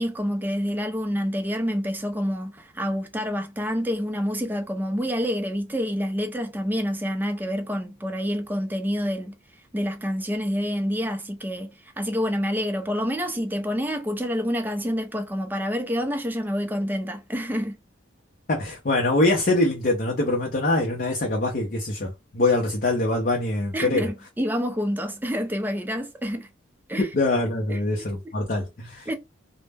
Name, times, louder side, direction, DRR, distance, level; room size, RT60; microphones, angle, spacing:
voice 1, 0.0-9.3 9.7-17.8 23.7-26.5 26.9-27.1 27.7-27.8 28.2-28.3 29.1-29.2, equal, 10° right, 0.4 m, -27 dB
voice 2, 18.5-24.1 27.0-29.1, left 2 dB, 45° left, 0.5 m, -24 dB
2.1 x 2.0 x 3.3 m
head